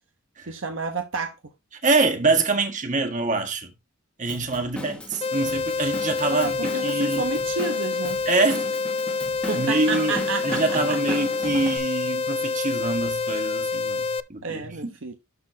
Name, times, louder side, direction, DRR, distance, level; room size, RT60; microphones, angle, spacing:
voice 1, 0.5-1.3 4.8-4.9 6.3-8.2 9.5-11.2 14.4-15.1, right 4 dB, 60° right, 1.0 m, -30 dB
voice 2, 1.8-3.7 4.2-7.2 8.2-8.7 9.5-14.9, right 3 dB, 35° right, 1.6 m, -25 dB
Drum kit / Drum, 4.3-11.8, left 1 dB, 5° left, 1.4 m, -37 dB
sound 1, 5.2-14.2, left 4 dB, 25° left, 0.3 m, -27 dB
12.5 x 4.4 x 2.8 m
head